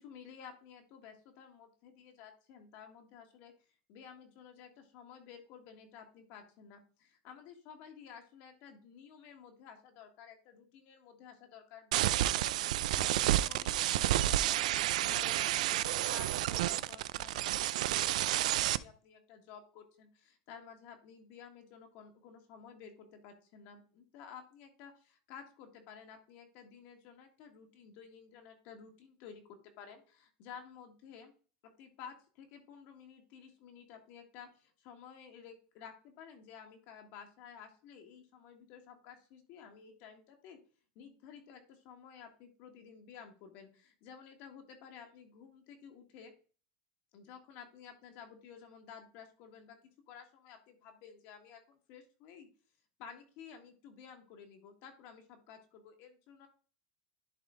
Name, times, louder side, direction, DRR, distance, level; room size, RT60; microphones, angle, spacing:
voice 1, 0.0-3.5 3.9-12.5 12.9-14.7 15.0-31.3 31.6-40.6 40.9-46.3 47.1-49.8 50.1-52.5 53.0-56.5, left 7 dB, 55° left, 5 dB, 1.6 m, -53 dB
sound 1, 11.9-18.8, right 14 dB, 85° right, 0.3 m, -30 dB
11.0 x 3.7 x 3.7 m, 0.40 s
supercardioid pair, 140°, 4 cm